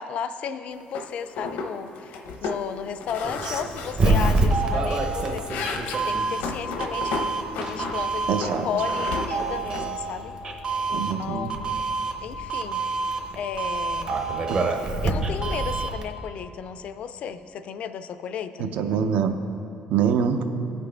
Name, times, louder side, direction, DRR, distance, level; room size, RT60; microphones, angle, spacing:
voice 1, 0.0-5.5 6.1-10.3 10.9-11.8 12.2-12.9 13.3-14.2 15.0-18.7, left 7 dB, 50° left, 11 dB, 0.4 m, -34 dB
sound 1, 0.9-1.1 1.4-1.7 2.0-2.6 3.0-4.6 5.0-8.0 8.4-9.9, left 4 dB, 85° left, 0.7 m, -33 dB
Doorbell, 3.2-16.0, right 3 dB, 30° right, 0.8 m, -27 dB
voice 2, 8.3-8.7 10.9-11.5 14.5-14.6 18.6-19.3 19.9-20.4, right 7 dB, 65° right, 8 dB, 0.6 m, -24 dB
16.5 x 5.9 x 3.4 m, 2.9 s
cardioid pair, 160°, 3 cm